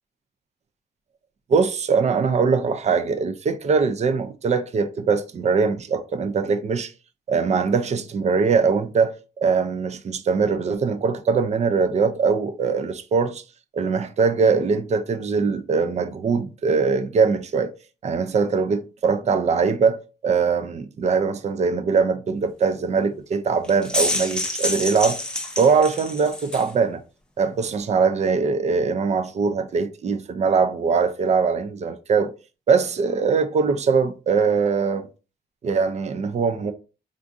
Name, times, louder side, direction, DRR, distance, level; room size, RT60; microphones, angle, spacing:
voice 1, 1.5-6.9 7.3-13.4 13.7-17.7 18.0-25.2 25.6-27.0 27.4-32.3 32.7-35.1 35.6-36.7, right 5 dB, 40° right, 0.4 m, -22 dB
sound 1, 23.6-26.7, left 1 dB, 5° left, 0.5 m, -27 dB
3.5 x 2.5 x 2.5 m
wide cardioid pair, 125°, 17 cm